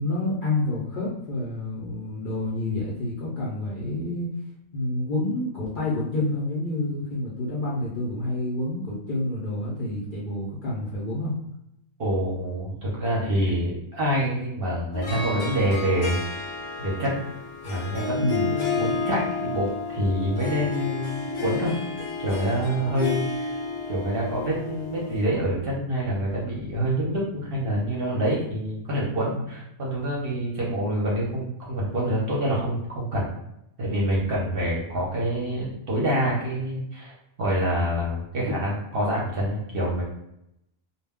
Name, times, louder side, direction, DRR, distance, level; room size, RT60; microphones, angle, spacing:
voice 1, 0.0-4.3 4.7-11.3 18.2-18.5 29.3-29.4, left 2 dB, 50° left, -7 dB, 0.6 m, -28 dB
voice 2, 12.0-16.2 16.8-17.2 17.6-21.7 22.2-23.5 23.9-33.3 33.8-37.1 37.4-40.0, equal, 50° right, -5 dB, 0.8 m, -26 dB
Harp, 14.9-25.2, left 3 dB, 75° left, 1.0 m, -31 dB
2.2 x 2.2 x 3.5 m, 0.82 s
omnidirectional pair, 1.4 m